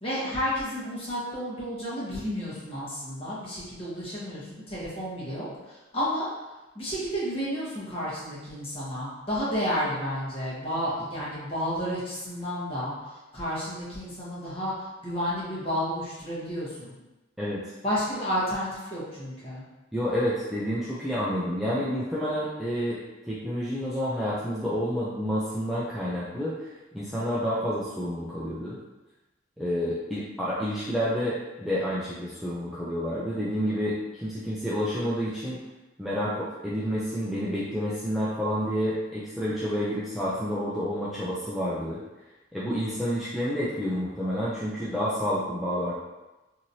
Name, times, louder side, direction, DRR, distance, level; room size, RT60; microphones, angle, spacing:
voice 1, 0.0-6.3 6.7-12.9 13.3-16.9 17.8-19.6, equal, 30° left, -9 dB, 1.1 m, -31 dB
voice 2, 17.4-17.7 19.9-23.0 23.2-26.7 26.9-28.8 29.6-35.6 36.0-42.0 42.5-46.0, equal, ahead, -10 dB, 0.4 m, -29 dB
3.0 x 2.7 x 2.6 m, 1.1 s
head